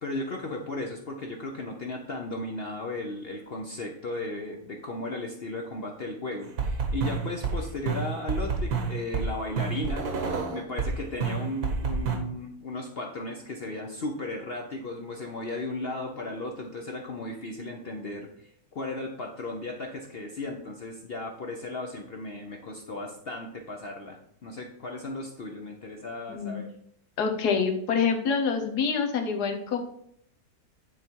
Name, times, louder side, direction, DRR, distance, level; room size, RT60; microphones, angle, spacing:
voice 1, 0.0-10.1 10.5-18.5 18.7-26.7, left 2 dB, 50° left, 1 dB, 0.8 m, -35 dB
sound 1, 6.6-10.9 11.2-12.2, right 5 dB, 75° right, 1.6 m, -28 dB
voice 2, 26.3-26.6 27.2-29.8, left 5 dB, 90° left, 4 dB, 1.5 m, -26 dB
9.7 x 3.5 x 4.5 m, 0.69 s
omnidirectional pair, 1.6 m